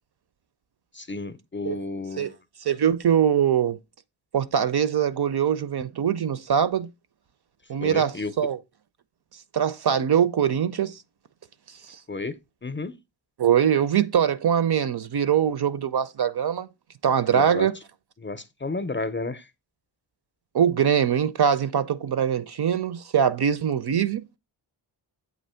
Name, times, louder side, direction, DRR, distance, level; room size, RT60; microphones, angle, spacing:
voice 1, 0.9-2.3 7.8-8.3 12.1-12.9 17.3-17.7 18.2-19.5, left 3 dB, 25° left, 0.5 m, -32 dB
voice 2, 2.6-3.8 4.3-6.9 7.7-8.6 9.5-11.0 11.9-12.0 13.4-16.7 17.0-17.8 20.5-24.2, right 8 dB, 55° right, 0.5 m, -22 dB
7.9 x 2.9 x 5.5 m
wide cardioid pair, 95°, 48 cm